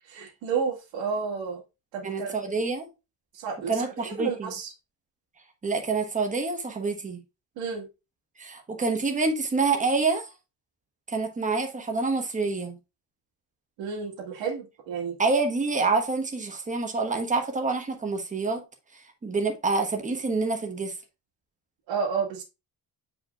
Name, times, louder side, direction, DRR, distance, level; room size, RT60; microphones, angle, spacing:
voice 1, 0.0-1.6 1.9-2.3 3.3-4.7 7.6-7.9 13.8-15.2 21.9-22.4, right 6 dB, 85° right, 1.9 m, -31 dB
voice 2, 2.0-2.9 3.7-4.5 5.6-7.2 8.4-10.3 11.1-12.8 15.2-18.6 19.2-20.9, right 3 dB, 15° right, 1.1 m, -27 dB
8.3 x 5.0 x 2.4 m
cardioid pair, 175°, 44 cm